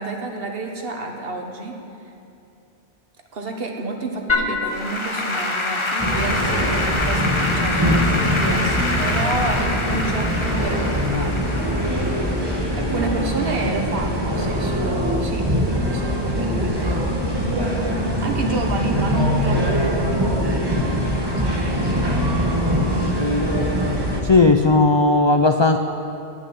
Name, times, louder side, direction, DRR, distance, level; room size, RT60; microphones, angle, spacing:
voice 1, 0.0-1.8 3.3-8.8 9.0-11.5 12.8-17.1 17.5-17.8 18.2-20.3 21.3-21.9, right 2 dB, 65° right, 2 dB, 1.4 m, -29 dB
Applause / Keyboard (musical), 4.3-13.6, left 2 dB, 30° left, 1.0 m, -26 dB
sound 1, 6.0-24.2, equal, 25° right, 1.3 m, -22 dB
voice 2, 24.2-25.8, left 3 dB, 50° left, 6 dB, 0.3 m, -15 dB
9.3 x 8.5 x 9.3 m, 2.8 s
omnidirectional pair, 1.1 m